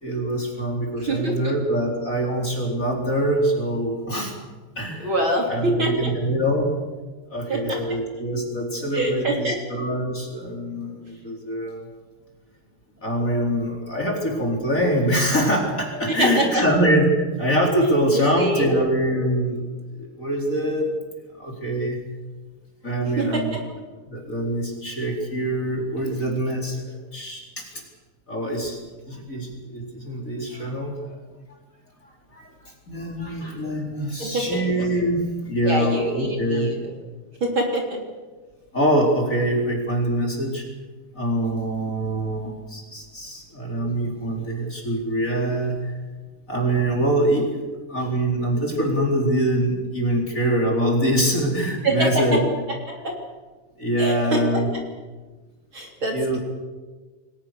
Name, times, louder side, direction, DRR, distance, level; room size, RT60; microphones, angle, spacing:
voice 1, 0.0-4.3 4.8-5.1 5.5-6.7 7.3-11.8 13.0-19.6 20.0-20.9 21.4-22.0 22.8-23.6 24.1-26.8 27.1-27.7 28.3-28.8 29.1-30.9 32.3-32.5 32.9-36.7 38.7-40.6 41.1-45.9 46.5-47.6 47.9-52.4 53.8-54.7 56.1-56.4, right 1 dB, 25° left, 0 dB, 4.5 m, -24 dB
voice 2, 1.0-1.5 5.0-6.1 7.5-7.8 8.9-9.6 16.1-16.6 18.1-18.9 23.2-23.6 34.2-34.6 35.6-36.9 37.4-38.0 51.8-52.4 52.9-53.2 54.0-54.8 55.7-56.2, right 1 dB, 40° right, 1 dB, 3.8 m, -25 dB
29.0 x 21.0 x 6.8 m, 1.3 s
omnidirectional pair, 3.6 m